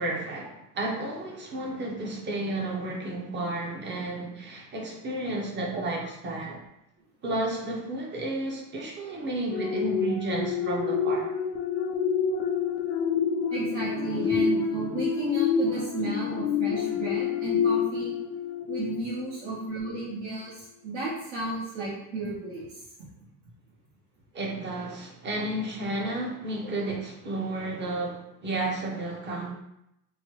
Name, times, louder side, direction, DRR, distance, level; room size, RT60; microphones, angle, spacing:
voice 1, 0.0-6.6 7.2-11.3 24.3-29.5, right 1 dB, 25° right, -1 dB, 0.6 m, -32 dB
sound 1, 9.5-19.4 19.8-20.0, left 6 dB, 35° left, 0.4 m, -28 dB
voice 2, 13.5-18.2 18.7-22.8, right 2 dB, 75° right, -9 dB, 1.2 m, -33 dB
3.1 x 2.1 x 3.0 m, 0.83 s
cardioid pair, 130°, 45 cm